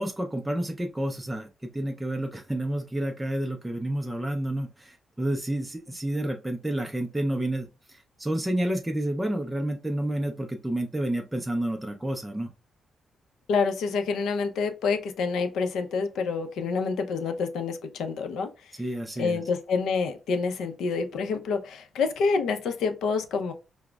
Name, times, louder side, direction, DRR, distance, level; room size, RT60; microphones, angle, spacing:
voice 1, 0.0-12.5 18.8-19.4, right 1 dB, 10° right, 0.4 m, -30 dB
voice 2, 13.5-18.5 19.2-23.5, left 4 dB, 85° left, 0.5 m, -27 dB
4.9 x 2.0 x 2.2 m
cardioid pair, 130°, 0 cm